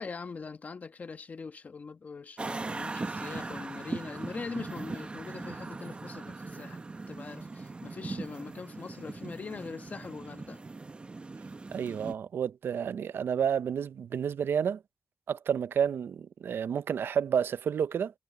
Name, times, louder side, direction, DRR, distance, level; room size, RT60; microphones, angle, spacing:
voice 1, 0.0-6.8 7.1-10.6, left 4 dB, 45° left, 1.1 m, -42 dB
sound 1, 2.4-12.1, right 3 dB, 30° right, 0.7 m, -40 dB
voice 2, 11.7-14.8 15.3-18.1, right 7 dB, 80° right, 0.5 m, -30 dB
wide cardioid pair, 125°, 4 cm